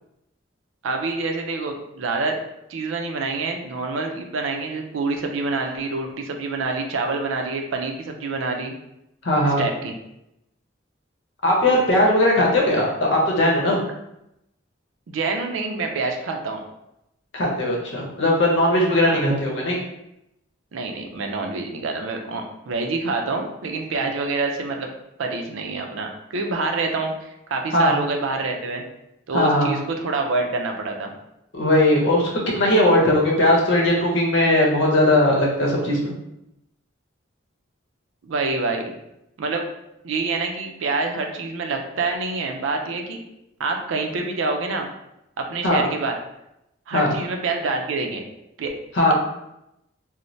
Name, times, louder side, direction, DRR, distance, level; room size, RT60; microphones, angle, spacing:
voice 1, 0.8-2.4 2.7-8.7 9.4-9.9 15.1-16.6 19.1-19.2 20.7-24.9 25.2-28.8 29.3-31.1 38.2-38.9 39.4-39.7 40.0-43.2 43.6-44.9 45.4-46.2 46.9-48.2 48.6-48.8, right 3 dB, 85° right, 3 dB, 0.4 m, -26 dB
voice 2, 9.2-9.6 11.4-13.8 17.3-19.8 23.9-24.0 27.7-27.9 29.3-29.7 31.5-32.3 32.6-36.2 45.6-45.8 46.9-47.1 49.0-49.1, left 1 dB, 70° left, -2 dB, 0.7 m, -19 dB
3.1 x 2.0 x 2.6 m, 0.84 s
head